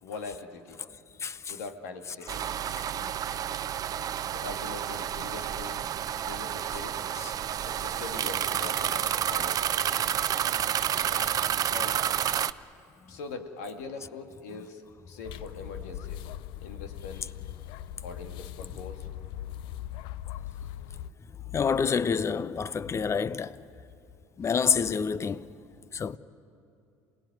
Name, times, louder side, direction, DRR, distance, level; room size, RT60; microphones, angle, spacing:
voice 1, 0.0-0.8 1.5-2.4 4.3-5.8 6.3-7.0 7.6-9.9 11.7-12.2 13.1-16.3 16.6-17.3 18.0-19.1 20.6-21.1 24.4-24.5, left 4 dB, 85° left, 2.1 m, -42 dB
voice 2, 1.2-1.5 2.8-3.1 3.9-4.1 7.2-7.3 21.5-23.6 24.4-25.5 25.9-26.2, left 6 dB, 35° left, 0.8 m, -28 dB
sound 1, 2.3-12.5, right 10 dB, 45° right, 0.6 m, -30 dB
sound 2, 15.2-21.1, left 12 dB, 70° left, 0.5 m, -40 dB
27.5 x 18.5 x 9.5 m
hypercardioid pair, 75°, 8 cm